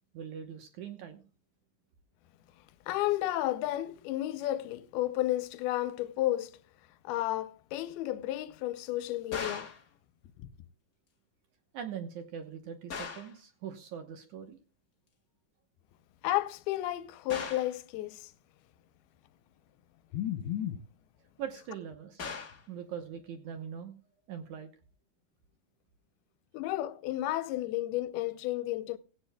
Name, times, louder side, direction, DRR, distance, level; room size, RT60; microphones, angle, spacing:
voice 1, 0.1-1.2 11.7-14.6 21.4-22.3 22.7-23.9 24.3-24.7, right 8 dB, 65° right, 2.0 m, -42 dB
voice 2, 2.9-6.6 7.0-9.7 16.2-18.3 20.1-20.8 26.5-29.0, left 14 dB, 85° left, 2.6 m, -32 dB
sound 1, 9.3-9.9 12.9-13.4 17.3-17.8 22.2-22.7, left 5 dB, 45° left, 1.1 m, -39 dB
17.5 x 16.5 x 2.2 m
omnidirectional pair, 4.4 m